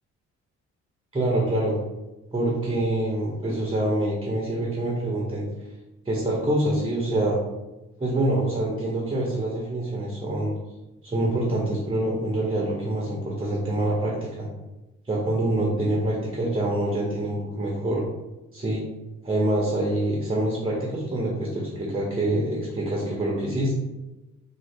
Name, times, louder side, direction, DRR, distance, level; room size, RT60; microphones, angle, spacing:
voice 1, 1.1-1.8 2.3-5.4 6.0-7.4 8.0-10.5 11.0-14.5 15.1-18.0 18.5-18.8 19.2-23.7, right 1 dB, 20° right, -3 dB, 0.8 m, -25 dB
3.7 x 2.1 x 3.5 m, 1.0 s
cardioid pair, 90°, 30 cm